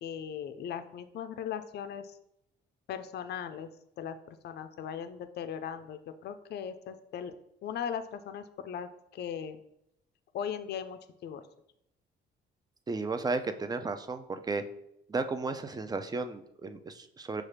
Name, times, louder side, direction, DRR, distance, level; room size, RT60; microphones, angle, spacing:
voice 1, 0.0-2.2 2.9-3.7 4.0-7.3 7.6-9.6 10.3-11.4, left 8 dB, 55° left, 10 dB, 0.4 m, -38 dB
voice 2, 12.9-14.6 15.1-17.4, right 3 dB, 20° right, 9 dB, 0.4 m, -34 dB
5.8 x 2.4 x 3.3 m, 0.79 s
cardioid pair, 90°, 20 cm